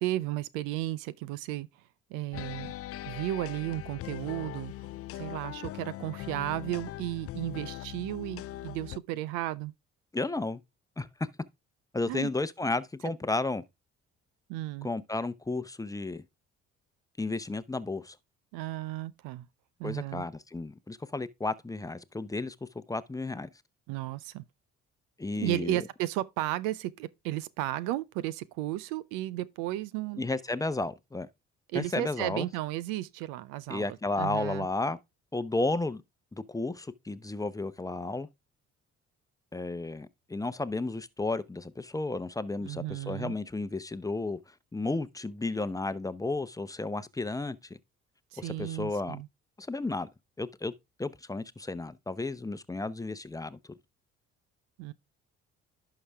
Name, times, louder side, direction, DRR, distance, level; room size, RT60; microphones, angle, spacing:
voice 1, 0.0-1.7 2.1-2.7 3.1-4.7 5.1-9.7 12.1-12.3 14.5-14.9 18.5-19.5 19.8-20.2 23.9-24.4 25.4-30.2 31.7-34.7 42.6-43.4 48.3-49.3 54.8-54.9, right 15 dB, 90° right, 0.5 m, -34 dB
sound 1, 2.3-9.0, left 15 dB, 50° left, 0.4 m, -41 dB
voice 2, 10.1-10.6 11.0-11.1 11.9-13.6 14.8-16.2 17.2-18.2 19.8-23.5 25.2-25.8 30.2-31.3 31.7-32.5 33.7-35.0 35.3-36.0 36.3-38.3 39.5-44.4 44.7-47.8 48.4-49.2 49.6-50.1 50.4-50.7 51.0-53.6, left 2 dB, 10° left, 0.7 m, -33 dB
11.0 x 4.9 x 3.4 m
supercardioid pair, 70°, 31 cm